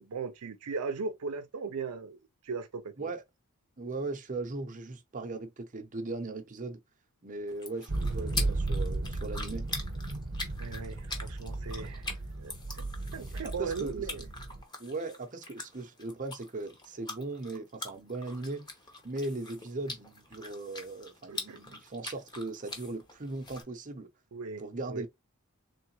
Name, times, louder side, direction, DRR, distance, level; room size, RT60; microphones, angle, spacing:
voice 1, 0.0-2.2 2.4-3.1 10.6-12.9 13.1-14.2 21.3-21.6 24.3-24.6 24.9-25.1, right 5 dB, 90° right, 0.5 m, -38 dB
voice 2, 3.8-6.8 7.2-9.7 13.4-14.0 14.8-18.7 19.0-24.1 24.6-25.1, right 2 dB, 35° right, 0.7 m, -38 dB
sound 1, 7.5-23.6, left 2 dB, 20° left, 0.9 m, -43 dB
sound 2, 7.9-14.6, right 2 dB, 60° right, 0.9 m, -35 dB
3.9 x 3.3 x 2.9 m
head